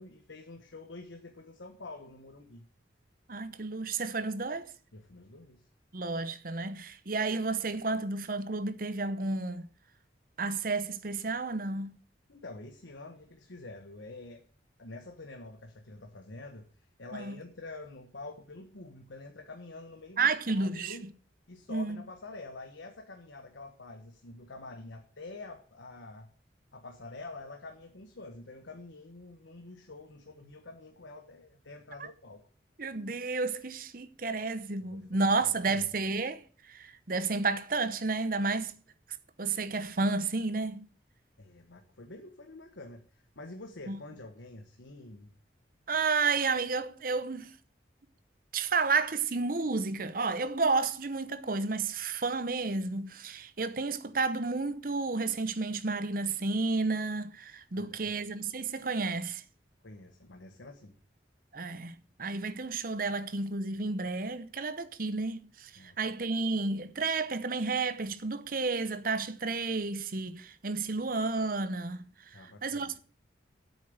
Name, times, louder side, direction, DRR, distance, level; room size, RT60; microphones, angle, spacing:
voice 1, 0.0-2.7 4.9-5.7 12.3-14.4 14.8-16.7 17.0-20.3 20.6-21.1 21.5-26.3 26.7-32.4 34.9-35.2 35.6-35.9 41.4-45.3 57.7-58.2 59.8-61.0 65.8-66.0 72.3-72.9, left 2 dB, 85° left, 1.3 m, -47 dB
voice 2, 3.3-4.7 5.9-9.7 10.4-12.0 17.1-17.3 20.2-21.1 21.7-22.0 32.0-32.1 32.8-38.8 39.4-40.9 43.9-44.0 45.9-47.5 48.5-59.4 61.5-61.9 62.2-72.1 72.3-73.0, right 3 dB, 50° right, 0.8 m, -31 dB
8.5 x 7.4 x 7.8 m
head